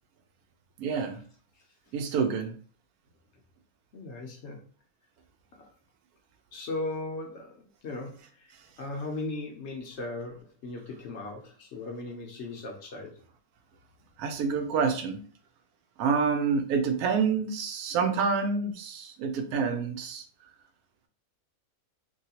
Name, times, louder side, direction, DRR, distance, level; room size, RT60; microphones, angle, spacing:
voice 1, 0.8-1.2 1.9-2.5 14.2-15.2 16.0-20.2, right 5 dB, 85° right, 6 dB, 1.1 m, -27 dB
voice 2, 3.9-4.6 6.5-13.2, left 2 dB, 60° left, 1 dB, 0.8 m, -37 dB
3.0 x 2.7 x 2.8 m, 0.43 s
omnidirectional pair, 1.5 m